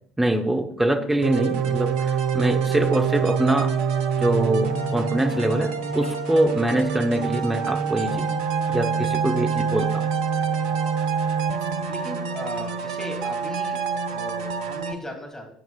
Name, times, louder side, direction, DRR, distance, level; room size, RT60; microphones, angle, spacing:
voice 1, 0.2-3.7 4.2-8.4 8.7-10.1, right 1 dB, 10° right, 5 dB, 1.1 m, -24 dB
sound 1, 1.2-14.9, right 6 dB, 60° right, 0.8 m, -26 dB
voice 2, 11.9-15.5, equal, 20° left, 2 dB, 2.7 m, -38 dB
12.0 x 9.0 x 2.4 m, 0.68 s
figure-of-eight pair, 60°, 3 cm